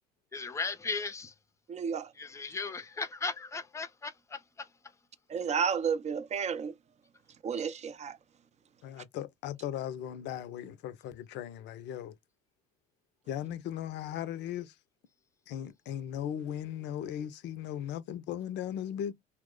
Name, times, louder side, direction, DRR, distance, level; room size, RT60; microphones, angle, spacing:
voice 1, 0.3-1.3 2.1-4.7, left 4 dB, 15° left, 0.6 m, -37 dB
voice 2, 1.7-2.1 5.3-6.7 7.4-8.2, right 6 dB, 35° right, 0.5 m, -31 dB
voice 3, 8.8-12.1 13.3-14.7 15.5-19.1, left 10 dB, 55° left, 0.6 m, -37 dB
2.9 x 2.1 x 3.6 m
hypercardioid pair, 70°, 21 cm